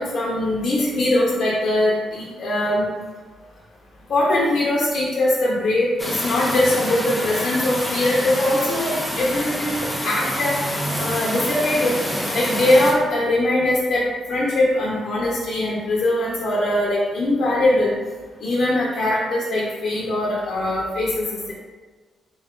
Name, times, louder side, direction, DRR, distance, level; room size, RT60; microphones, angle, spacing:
voice 1, 0.0-2.8 4.1-10.5 11.0-11.9 12.3-17.9 18.4-21.5, left 1 dB, 55° left, -5 dB, 0.7 m, -21 dB
sound 1, 6.0-12.9, equal, 5° left, 0.5 m, -27 dB
3.8 x 2.3 x 3.6 m, 1.4 s
cardioid pair, 155°, 0 cm